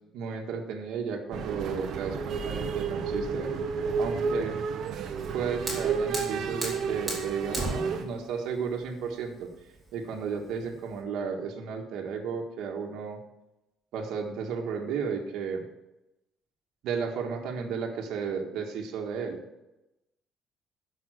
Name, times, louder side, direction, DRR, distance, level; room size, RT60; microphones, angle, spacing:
voice 1, 0.1-3.5 4.0-4.6 5.3-9.5 9.9-13.2 13.9-15.6 16.8-19.4, right 6 dB, 70° right, 1 dB, 1.5 m, -33 dB
sound 1, 1.3-8.0, right 5 dB, 50° right, 1.0 m, -31 dB
Fire, 5.0-11.0, right 2 dB, 10° right, 2.7 m, -38 dB
11.5 x 5.7 x 6.2 m, 0.94 s
cardioid pair, 175°, 0 cm